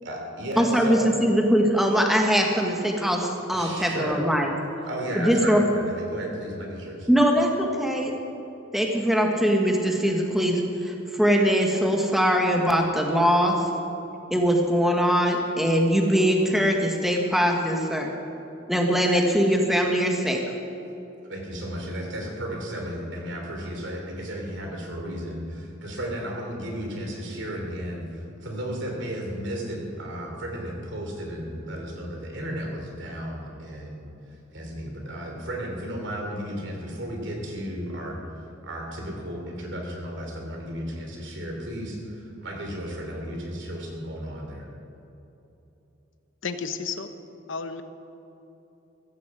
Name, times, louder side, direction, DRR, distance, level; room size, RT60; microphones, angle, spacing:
voice 1, 0.0-1.1 3.5-4.2 4.9-7.1 21.3-44.7, equal, 60° right, 1 dB, 3.1 m, -34 dB
voice 2, 0.6-4.5 5.1-5.6 7.1-8.1 8.7-13.6 14.3-18.1 18.7-20.4, equal, ahead, 1 dB, 1.3 m, -22 dB
voice 3, 46.4-47.1 47.5-47.8, left 5 dB, 70° left, 9 dB, 0.9 m, -31 dB
15.5 x 15.0 x 4.9 m, 3.0 s
head